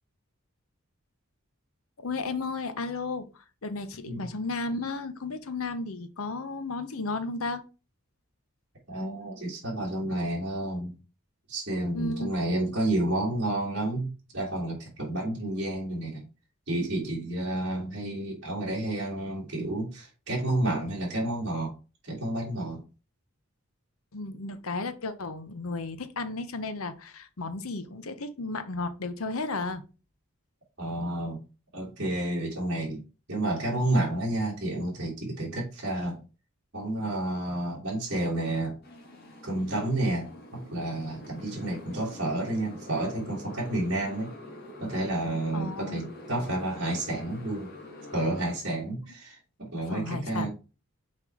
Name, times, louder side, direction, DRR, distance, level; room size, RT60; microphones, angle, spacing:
voice 1, 2.0-7.6 11.9-12.4 24.1-29.8 45.5-46.1 49.9-50.5, left 3 dB, 80° left, 0.9 m, -34 dB
voice 2, 8.9-10.9 11.5-16.2 16.7-21.7 22.0-22.8 30.8-31.4 31.7-33.0 33.3-36.2 36.7-38.8 39.4-44.3 44.8-47.7 48.1-50.5, right 1 dB, 55° right, 2.5 m, -30 dB
Motorcycle, 38.8-48.6, left 2 dB, 45° left, 1.9 m, -46 dB
5.9 x 4.4 x 4.5 m
head